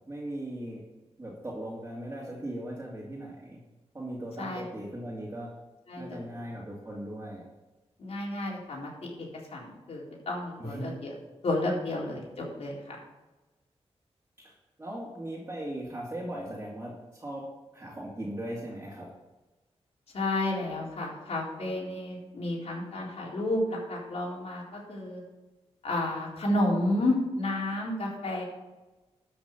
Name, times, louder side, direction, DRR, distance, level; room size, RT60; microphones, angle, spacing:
voice 1, 0.1-0.8 1.2-3.6 3.9-5.5 6.0-7.4 10.6-11.1 14.4-14.5 14.8-19.1, right 1 dB, 20° right, -6 dB, 2.6 m, -38 dB
voice 2, 5.9-6.3 8.0-11.1 11.4-13.0 20.1-25.2 25.8-28.4, left 1 dB, 70° left, -3 dB, 3.9 m, -31 dB
13.0 x 6.0 x 6.9 m, 1.1 s
wide cardioid pair, 100°, 11 cm